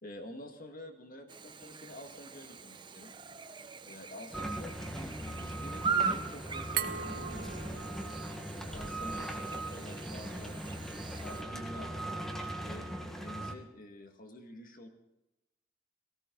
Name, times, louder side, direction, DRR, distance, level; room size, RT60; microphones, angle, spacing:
voice 1, 0.0-3.1 3.4-7.8 8.2-12.1 12.6-12.9 13.2-14.9, left 1 dB, 45° left, 5 dB, 2.0 m, -49 dB
Chirp tweet / Buzz, 1.3-11.4, right 6 dB, 25° right, 0.8 m, -40 dB
sound 1, 4.3-13.5, right 1 dB, ahead, 1.5 m, -39 dB
Glass, 6.8-9.5, right 9 dB, 55° right, 1.0 m, -40 dB
18.0 x 16.0 x 3.9 m, 0.93 s
head